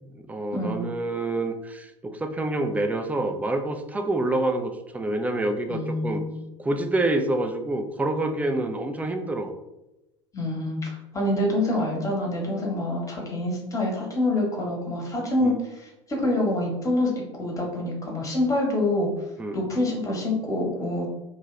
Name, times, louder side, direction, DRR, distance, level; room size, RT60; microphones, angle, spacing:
voice 1, 0.0-6.2 6.6-9.5 15.4-15.5 19.4-19.6, right 2 dB, 10° right, 6 dB, 0.3 m, -27 dB
voice 2, 0.5-0.8 5.7-6.3 10.3-19.1 19.5-21.1, left 1 dB, 20° left, -1 dB, 1.0 m, -26 dB
2.7 x 2.2 x 3.0 m, 0.95 s
figure-of-eight pair, 75°, 16 cm